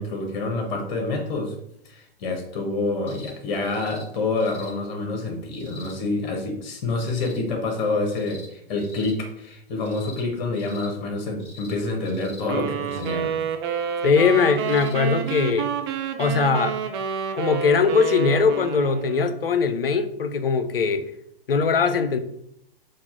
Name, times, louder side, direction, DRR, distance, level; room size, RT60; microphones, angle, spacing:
voice 1, 0.0-1.5 1.8-13.4, left 3 dB, 50° left, 2 dB, 1.3 m, -27 dB
sound 1, 3.1-3.3 3.6-4.0 4.4-4.7 5.5-6.0 6.9-7.4 8.0-8.5 8.8-9.1 9.8-10.3 10.5-10.9 11.4-11.7 12.0-12.4 12.9-13.2 14.5-14.9 15.3-15.4 16.5-16.6, left 3 dB, 20° left, 1.1 m, -45 dB
sound 2, 12.5-19.4, right 8 dB, 30° right, 0.4 m, -29 dB
voice 2, 14.0-15.7 16.2-16.8 17.4-21.1 21.5-22.2, left 5 dB, 75° left, 10 dB, 0.6 m, -21 dB
4.1 x 2.4 x 4.4 m, 0.75 s
figure-of-eight pair, 105°, 29 cm